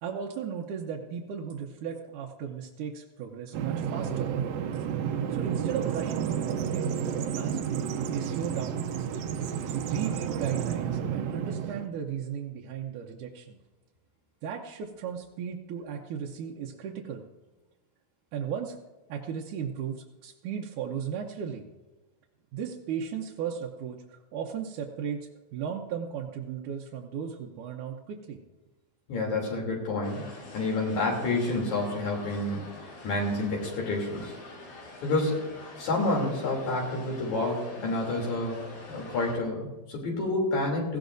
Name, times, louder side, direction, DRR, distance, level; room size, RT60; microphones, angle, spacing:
voice 1, 0.0-4.3 5.3-7.6 8.0-8.8 9.6-13.6 14.4-17.3 18.3-18.8 19.1-21.7 22.5-28.4, right 7 dB, 90° right, -1 dB, 2.4 m, -36 dB
Bird vocalization bird call bird song, 3.5-11.9, right 8 dB, 75° right, 1.8 m, -31 dB
voice 2, 29.1-32.6 33.0-34.4 35.0-35.4 35.8-38.6 38.9-41.0, left 2 dB, 70° left, -1 dB, 4.5 m, -29 dB
sound 1, 30.0-39.4, left 2 dB, 90° left, 4.5 m, -46 dB
18.0 x 16.0 x 2.6 m, 1.1 s
omnidirectional pair, 3.5 m